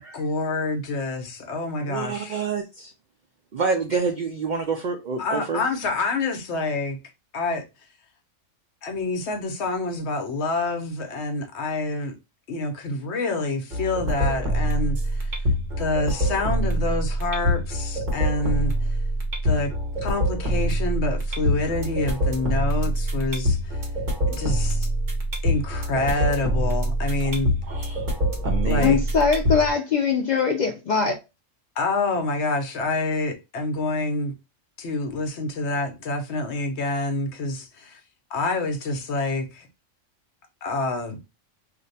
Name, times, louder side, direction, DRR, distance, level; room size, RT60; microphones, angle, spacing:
voice 1, 0.0-2.4 5.2-7.0 7.3-7.6 8.8-12.2 12.5-15.3 15.8-19.0 19.4-19.7 20.0-23.8 24.3-24.9 25.4-27.5 28.6-29.0 31.8-34.3 34.8-38.0 38.3-39.7 40.6-41.2, left 2 dB, 65° left, 0.9 m, -27 dB
voice 2, 1.8-2.9 3.5-5.6 27.7-28.1 28.4-29.0, right 5 dB, 75° right, 0.4 m, -28 dB
sound 1, 13.7-29.7, equal, 40° right, 1.1 m, -25 dB
voice 3, 28.8-31.2, left 5 dB, 80° left, 0.4 m, -21 dB
2.6 x 2.2 x 3.9 m
omnidirectional pair, 1.3 m